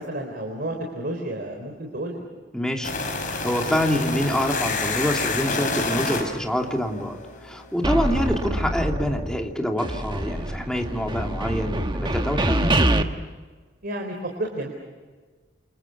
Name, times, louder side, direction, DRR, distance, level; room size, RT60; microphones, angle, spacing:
voice 1, 0.0-2.2 13.8-14.7, right 1 dB, 55° right, 2 dB, 4.1 m, -31 dB
voice 2, 2.5-2.9 3.4-7.2 7.4-12.8, equal, 5° left, 1 dB, 2.7 m, -26 dB
sound 1, 2.8-7.7, left 3 dB, 45° left, 5.6 m, -28 dB
sound 2, 7.8-9.5 9.8-13.0, right 1 dB, 25° right, 1.4 m, -25 dB
28.5 x 28.5 x 6.0 m, 1.4 s
head